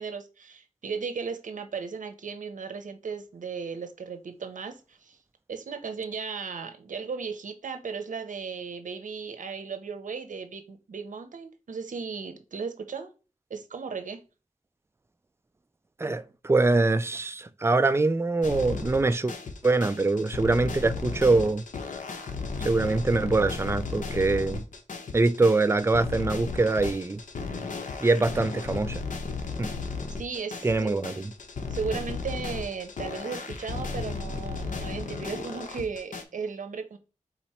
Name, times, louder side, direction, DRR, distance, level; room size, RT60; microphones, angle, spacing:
voice 1, 0.0-5.2 5.5-13.1 13.5-14.2 30.2-31.0 31.7-37.0, right 5 dB, 75° right, 0.7 m, -36 dB
voice 2, 16.0-19.3 19.6-21.6 22.6-24.6 25.1-27.2 28.0-29.0 29.6-29.7 30.6-31.3, right 3 dB, 20° right, 0.4 m, -24 dB
sound 1, 18.4-36.2, left 4 dB, 80° left, 0.8 m, -35 dB
4.0 x 3.0 x 4.3 m
wide cardioid pair, 70°, 13 cm